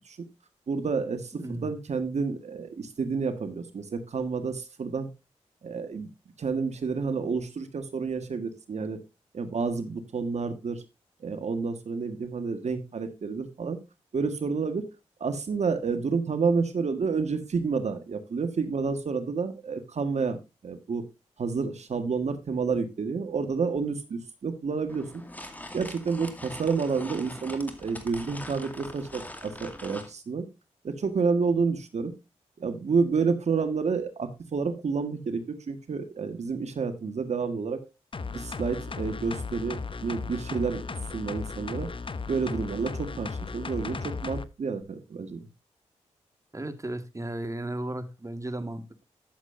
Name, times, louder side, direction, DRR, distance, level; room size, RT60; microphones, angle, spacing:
voice 1, 0.7-5.1 5.6-6.1 6.4-9.0 9.3-10.8 11.2-13.8 14.1-14.8 15.2-20.4 20.6-21.0 21.4-25.1 25.7-30.4 30.8-32.1 32.6-37.8 38.3-40.8 41.1-41.9 42.3-45.4, right 5 dB, 65° right, 1.6 m, -29 dB
voice 2, 1.3-1.7 46.5-49.0, right 1 dB, 25° right, 1.9 m, -35 dB
sound 1, 24.9-30.1, left 1 dB, 15° left, 2.2 m, -42 dB
sound 2, 38.1-44.5 44.8-44.9, left 4 dB, 45° left, 0.9 m, -36 dB
12.0 x 7.5 x 2.7 m
supercardioid pair, 45°, 13 cm